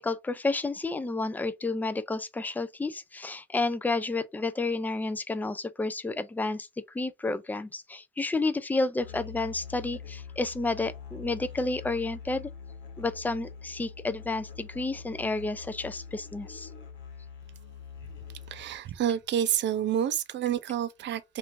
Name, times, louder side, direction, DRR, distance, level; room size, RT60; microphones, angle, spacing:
voice 1, 0.0-6.7 6.9-12.5 13.0-16.7, left 3 dB, 10° left, 0.3 m, -31 dB
Musical instrument, 9.0-18.8, left 6 dB, 70° left, 1.2 m, -44 dB
voice 2, 18.5-21.4, right 10 dB, 65° right, 0.5 m, -29 dB
3.0 x 2.5 x 2.5 m
cardioid pair, 90°, 20 cm